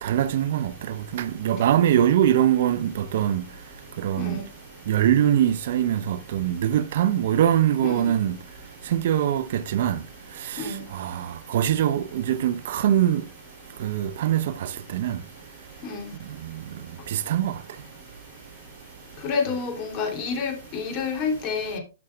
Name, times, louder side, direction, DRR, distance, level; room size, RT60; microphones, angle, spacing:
voice 1, 0.0-3.4 4.0-4.4 4.9-8.4 8.9-10.0 10.9-13.2 13.8-15.2 17.1-17.5, right 10 dB, 60° right, 0.7 m, -23 dB
voice 2, 7.8-8.1 10.6-10.8 15.8-16.1 19.2-21.8, left 5 dB, 35° left, 3.1 m, -29 dB
12.0 x 6.3 x 2.4 m
hypercardioid pair, 120°, 0 cm